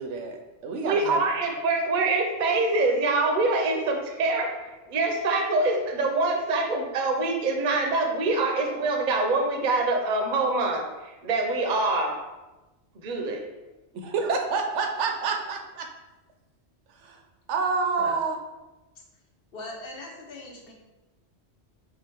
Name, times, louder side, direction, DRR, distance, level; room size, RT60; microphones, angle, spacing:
voice 1, 0.0-1.2 13.9-15.9 16.9-17.2 17.5-18.4, right 4 dB, 85° right, 4 dB, 1.0 m, -28 dB
voice 2, 0.8-4.6 4.9-12.2 13.0-13.4, right 3 dB, 45° right, 2 dB, 0.7 m, -25 dB
voice 3, 19.5-20.7, left 2 dB, 55° left, -1 dB, 1.0 m, -40 dB
4.8 x 2.5 x 4.4 m, 1.1 s
omnidirectional pair, 1.2 m